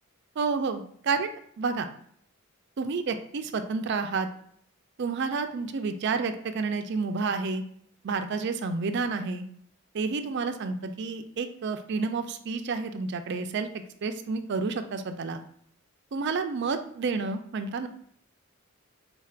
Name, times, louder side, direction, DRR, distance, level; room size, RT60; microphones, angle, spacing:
voice 1, 0.4-1.3 1.6-1.9 2.8-4.3 5.0-7.6 8.0-9.5 9.9-13.7 14.0-15.4 16.1-17.9, right 4 dB, 55° right, 8 dB, 0.4 m, -30 dB
4.0 x 2.4 x 4.3 m, 0.63 s
head